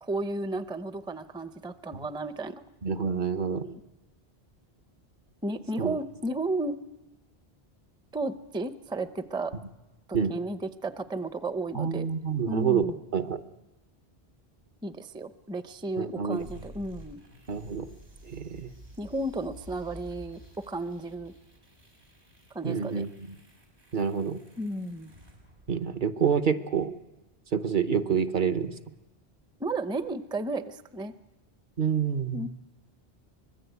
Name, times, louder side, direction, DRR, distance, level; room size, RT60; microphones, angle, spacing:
voice 1, 0.0-2.6 3.5-3.8 5.4-6.8 8.1-9.5 10.1-12.1 12.5-13.0 14.8-17.2 19.0-20.4 20.7-21.3 22.5-23.1 24.6-25.1 29.6-31.1 32.3-32.5, right 2 dB, 5° right, 11 dB, 0.6 m, -33 dB
voice 2, 2.8-3.7 5.8-6.0 10.1-10.3 11.7-12.9 13.1-13.4 16.0-16.4 17.5-17.9 18.2-18.7 22.6-23.3 23.9-24.4 25.7-26.9 27.5-28.7 31.8-32.5, right 7 dB, 50° right, 8 dB, 1.1 m, -27 dB
sound 1, 16.3-26.3, right 1 dB, 80° right, 5.3 m, -51 dB
24.5 x 21.0 x 8.2 m, 1.0 s
omnidirectional pair, 1.1 m